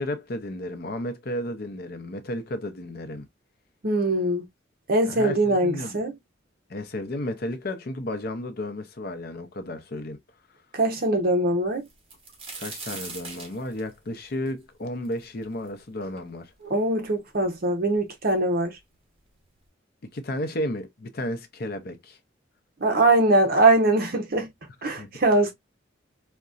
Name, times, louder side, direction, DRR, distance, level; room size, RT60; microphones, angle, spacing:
voice 1, 0.0-3.3 5.1-6.0 6.7-10.2 12.6-16.5 20.0-22.2 25.0-25.1, left 1 dB, 50° left, 0.6 m, -33 dB
voice 2, 3.8-4.5 4.9-6.1 10.7-11.8 16.6-18.8 22.8-24.5 24.8-25.5, right 2 dB, 50° right, 0.7 m, -22 dB
sound 1, 11.8-15.7 16.2-16.3 17.0-17.1 17.4-18.1 18.9-19.0 19.4-19.6, right 3 dB, 30° right, 1.1 m, -40 dB
3.9 x 2.2 x 2.3 m
head